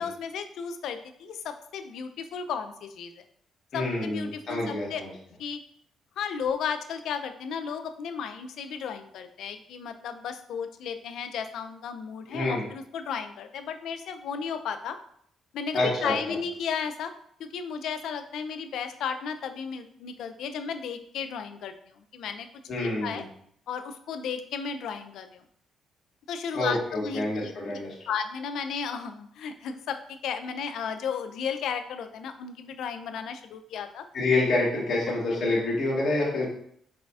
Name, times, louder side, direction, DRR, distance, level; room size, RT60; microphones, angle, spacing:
voice 1, 0.0-3.2 3.7-5.0 5.4-5.6 6.2-15.0 15.5-17.1 17.4-22.5 22.8-23.2 23.7-25.4 26.3-27.8 28.1-34.1, left 6 dB, 75° left, 9 dB, 0.4 m, -34 dB
voice 2, 3.7-5.1 12.3-12.6 15.7-16.1 22.7-23.2 26.5-27.9 34.1-36.5, left 2 dB, 55° left, -4 dB, 1.8 m, -27 dB
4.8 x 4.1 x 2.4 m, 0.68 s
cardioid pair, 90°, 0 cm